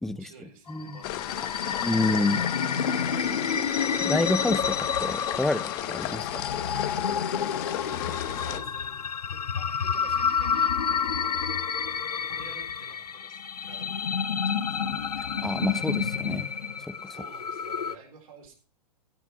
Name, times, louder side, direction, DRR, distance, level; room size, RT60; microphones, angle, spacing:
voice 1, 0.0-1.9 6.3-6.5 7.6-7.8 8.4-8.9 9.3-11.8 12.1-15.1 17.1-18.5, right 4 dB, 60° right, 4.2 m, -51 dB
sound 1, 0.7-17.9, left 6 dB, 75° left, 0.8 m, -29 dB
sound 2, 1.0-8.6, left 14 dB, 35° left, 1.1 m, -34 dB
voice 2, 1.8-2.4 4.0-6.3 15.4-16.5 16.9-17.2, left 2 dB, ahead, 0.5 m, -28 dB
16.5 x 6.0 x 5.9 m
figure-of-eight pair, 105°, 20 cm